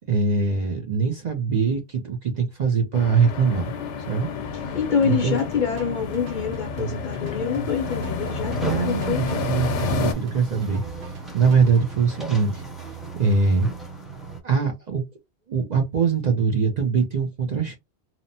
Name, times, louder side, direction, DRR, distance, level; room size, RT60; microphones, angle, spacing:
voice 1, 0.1-3.6 4.0-4.3 4.6-4.7 5.1-5.4 8.6-12.6 13.2-13.7 14.4-15.0 15.5-17.8, right 5 dB, 50° right, 0.5 m, -22 dB
sound 1, 2.9-10.1, left 5 dB, 80° left, 0.9 m, -30 dB
voice 2, 4.7-9.2, left 7 dB, 55° left, 0.6 m, -26 dB
sound 2, 5.0-11.8, right 5 dB, 70° right, 1.0 m, -39 dB
sound 3, 7.8-14.4, right 3 dB, ahead, 0.4 m, -36 dB
2.8 x 2.0 x 2.6 m
omnidirectional pair, 1.2 m